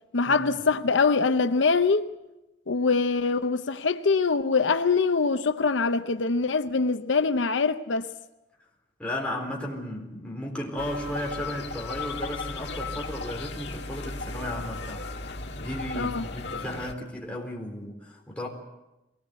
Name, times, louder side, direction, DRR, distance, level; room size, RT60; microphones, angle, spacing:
voice 1, 0.1-2.1 2.7-8.1 15.9-16.2, left 4 dB, 80° left, 0.7 m, -24 dB
voice 2, 9.0-15.1 15.6-18.5, left 1 dB, 5° left, 4.0 m, -34 dB
sound 1, 10.8-16.9, left 3 dB, 65° left, 1.7 m, -36 dB
22.0 x 19.0 x 8.1 m
head